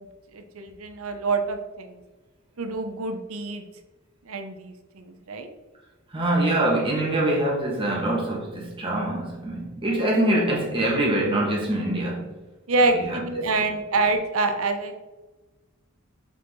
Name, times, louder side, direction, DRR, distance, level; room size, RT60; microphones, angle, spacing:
voice 1, 0.3-2.0 2.6-3.7 4.3-5.5 12.7-14.9, right 3 dB, 80° right, 7 dB, 0.9 m, -26 dB
voice 2, 6.1-12.3 12.8-13.6, right 1 dB, 25° right, -4 dB, 2.3 m, -24 dB
7.0 x 4.7 x 4.1 m, 1.2 s
head